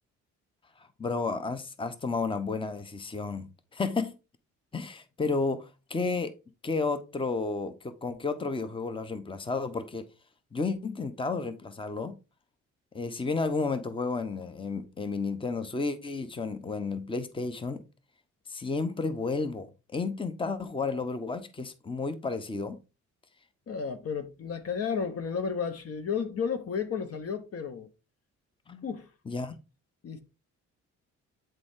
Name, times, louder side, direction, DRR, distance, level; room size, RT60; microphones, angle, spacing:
voice 1, 0.8-3.5 3.7-4.1 4.7-6.3 6.6-10.0 10.5-12.1 12.9-17.8 18.5-22.8 28.7-28.9 29.3-29.5, left 4 dB, 15° left, 0.9 m, -32 dB
voice 2, 23.7-27.9 28.8-29.1 30.0-30.2, left 6 dB, 50° left, 1.1 m, -32 dB
9.0 x 3.8 x 3.6 m
cardioid pair, 90°, 30 cm